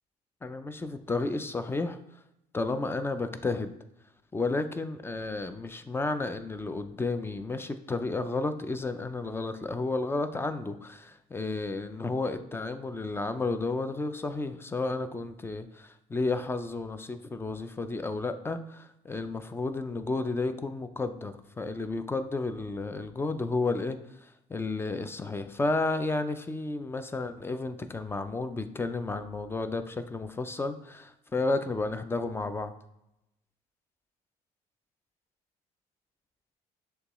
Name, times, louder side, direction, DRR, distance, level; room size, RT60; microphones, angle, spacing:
voice 1, 0.4-2.0 2.5-3.7 4.3-32.7, left 3 dB, 15° left, 10 dB, 0.3 m, -32 dB
6.5 x 2.3 x 3.0 m, 0.86 s
cardioid pair, 110°, 17 cm